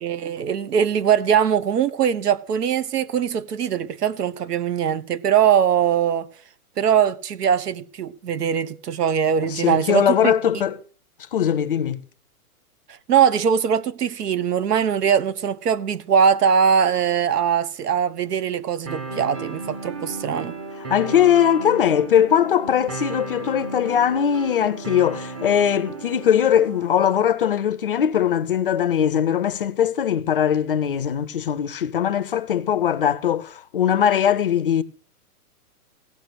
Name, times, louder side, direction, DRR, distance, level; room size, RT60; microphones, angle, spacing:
voice 1, 0.0-6.3 6.8-10.3 13.1-20.5, right 8 dB, 85° right, 1.2 m, -21 dB
voice 2, 9.4-10.8 11.3-12.0 20.9-34.8, left 9 dB, 35° left, 0.5 m, -20 dB
sound 1, 18.9-26.9, right 3 dB, 20° right, 0.8 m, -34 dB
16.0 x 5.9 x 7.7 m
hypercardioid pair, 165°, 46 cm